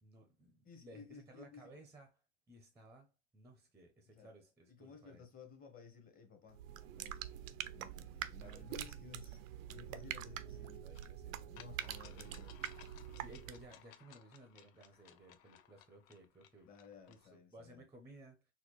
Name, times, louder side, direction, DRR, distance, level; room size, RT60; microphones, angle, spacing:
voice 1, 0.0-2.2 2.5-5.2 8.4-8.9 10.4-12.5 13.1-16.7 17.1-18.5, right 1 dB, 5° right, 0.5 m, -59 dB
voice 2, 0.6-1.7 4.1-4.3 4.7-6.6 7.0-7.2 7.7-10.9 11.5-12.5 16.6-17.8, left 6 dB, 20° left, 0.9 m, -56 dB
sound 1, 6.5-13.8, right 11 dB, 85° right, 0.5 m, -46 dB
sound 2, 10.9-11.1 11.6-17.3, left 11 dB, 80° left, 0.6 m, -60 dB
4.1 x 2.3 x 3.0 m
supercardioid pair, 135°, 39 cm